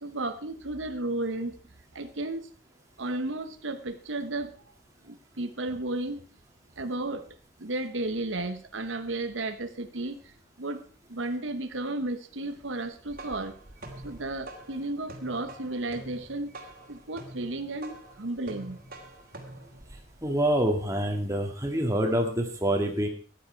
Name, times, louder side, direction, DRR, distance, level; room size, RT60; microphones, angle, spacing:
voice 1, 0.0-1.6 1.9-2.5 3.0-4.6 5.0-6.2 6.8-7.3 7.6-10.8 11.1-13.5 14.0-16.6 16.9-18.8, right 2 dB, 80° right, 9 dB, 1.1 m, -33 dB
sound 1, 12.8-20.6, right 1 dB, 45° right, 2.6 m, -46 dB
voice 2, 20.2-23.1, equal, 15° right, 2 dB, 2.0 m, -26 dB
14.0 x 10.5 x 4.6 m, 0.40 s
head